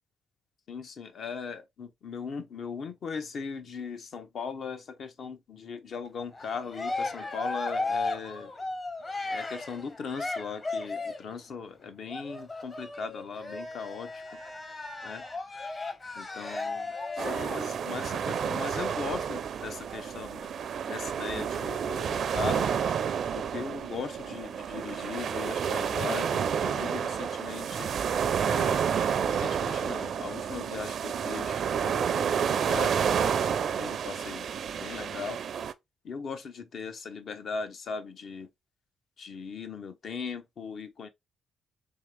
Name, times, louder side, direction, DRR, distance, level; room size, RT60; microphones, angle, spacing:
voice 1, 0.7-8.5 9.2-14.2 15.0-15.2 16.2-20.6 20.9-22.7 23.3-27.9 28.4-28.9 29.3-33.3 33.8-34.5 34.7-35.4 36.0-38.5 39.2-41.1, left 5 dB, 60° left, 0.7 m, -39 dB
Cheering, 6.3-11.3 12.1-17.7, left 3 dB, 35° left, 1.0 m, -35 dB
sound 1, 17.2-35.7, right 7 dB, 60° right, 0.4 m, -30 dB
3.6 x 3.3 x 3.3 m
cardioid pair, 90°, 0 cm